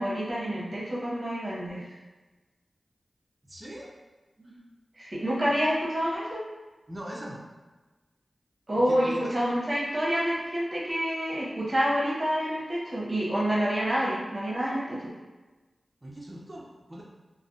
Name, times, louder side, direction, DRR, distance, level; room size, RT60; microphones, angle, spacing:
voice 1, 0.0-1.9 4.4-4.6 5.0-6.5 8.7-15.1, equal, 45° right, -6 dB, 0.9 m, -28 dB
voice 2, 3.4-3.9 4.4-4.6 6.9-7.4 8.7-9.3 16.0-17.0, equal, 25° right, -4 dB, 0.6 m, -41 dB
2.5 x 2.0 x 2.6 m, 1.2 s
cardioid pair, 40°, 0 cm